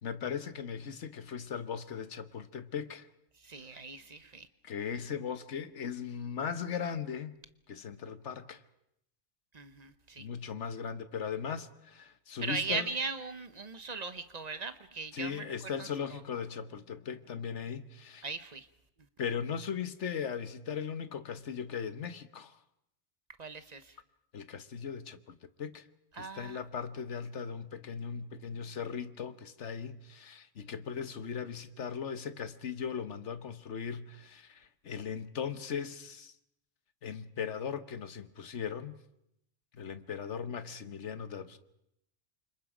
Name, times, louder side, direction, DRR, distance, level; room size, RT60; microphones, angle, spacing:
voice 1, 0.0-3.1 3.7-3.8 4.6-7.3 7.7-8.6 10.2-12.9 15.1-18.3 19.2-22.6 24.3-25.8 26.2-36.3 37.0-38.9 39.7-41.6, left 7 dB, 75° left, 1.4 m, -38 dB
voice 2, 3.4-4.5 9.5-10.3 12.4-15.5 16.1-16.2 18.2-18.7 23.4-23.9 26.1-26.6, right 4 dB, 35° right, 1.2 m, -38 dB
28.5 x 25.0 x 5.1 m
omnidirectional pair, 1.2 m